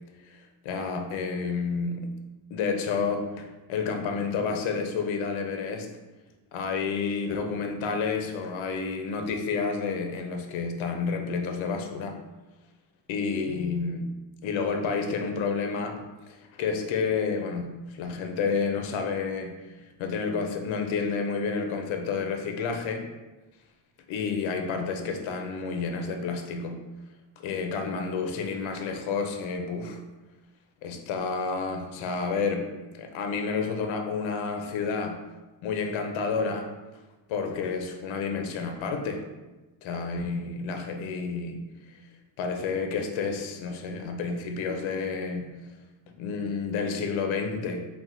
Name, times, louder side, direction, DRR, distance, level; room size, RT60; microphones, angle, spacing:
voice 1, 0.6-2.1 2.5-5.9 6.5-12.2 13.1-14.1 14.4-16.0 16.3-19.5 20.0-23.0 24.1-26.8 27.4-30.0 30.8-35.2 35.6-36.7 37.3-39.2 39.8-41.6 42.4-45.5 46.2-47.9, left 5 dB, 80° left, 4 dB, 0.7 m, -30 dB
4.6 x 2.2 x 3.9 m, 1.1 s
cardioid pair, 140°, 46 cm